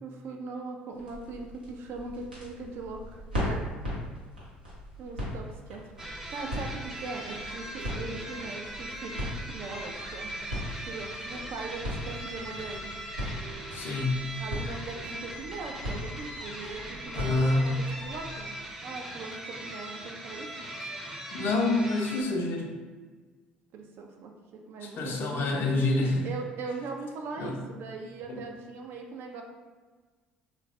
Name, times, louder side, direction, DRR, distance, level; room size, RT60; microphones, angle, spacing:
voice 1, 0.0-3.6 5.0-10.3 10.9-12.9 14.4-18.6 18.8-20.5 23.7-25.6 26.2-29.4, right 3 dB, 50° right, 2 dB, 0.4 m, -40 dB
sound 1, 0.9-18.4, equal, 90° right, 0.7 m, -39 dB
sound 2, 6.0-22.2, right 1 dB, 5° right, 0.6 m, -40 dB
voice 2, 13.7-14.3 17.1-17.9 21.3-22.7 24.8-26.3 27.4-27.6 28.3-28.4, left 2 dB, 45° left, 1 dB, 0.5 m, -27 dB
3.1 x 2.2 x 2.4 m, 1.4 s
figure-of-eight pair, 55°, 5 cm